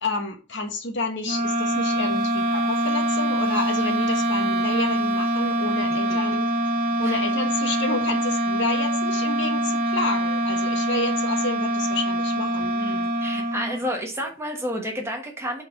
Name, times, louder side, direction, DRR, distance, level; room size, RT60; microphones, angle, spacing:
voice 1, 0.0-6.5 7.0-12.7, left 3 dB, 55° left, 3 dB, 1.3 m, -30 dB
sound 1, 1.2-13.9, right 1 dB, 45° right, 1.0 m, -24 dB
voice 2, 12.8-15.6, equal, 10° right, 1 dB, 1.3 m, -31 dB
5.8 x 4.2 x 5.9 m, 0.34 s
head